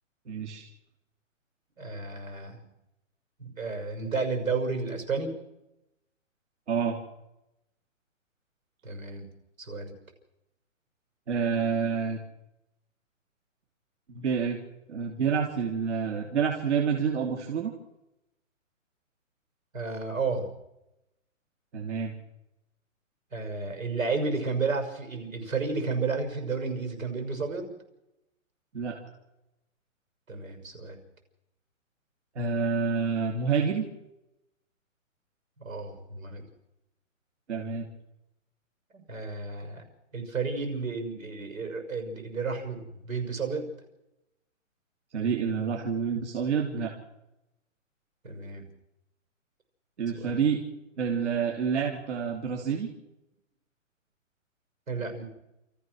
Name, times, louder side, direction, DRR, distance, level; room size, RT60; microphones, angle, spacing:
voice 1, 0.3-0.6 6.7-7.0 11.3-12.2 14.1-14.6 14.9-17.7 21.7-22.1 28.7-29.0 32.3-33.9 37.5-37.9 45.1-46.9 50.0-50.6 51.0-52.9, right 6 dB, 60° right, 0 dB, 3.2 m, -28 dB
voice 2, 1.8-2.7 3.4-5.3 8.8-9.3 9.6-9.9 19.7-20.5 23.3-27.7 30.3-31.0 35.6-36.4 38.9-39.8 40.1-43.7 48.2-48.7 50.1-50.4 54.9-55.2, right 4 dB, 80° right, 6 dB, 6.3 m, -32 dB
29.5 x 14.5 x 6.3 m, 0.91 s
hypercardioid pair, 170°, 40 cm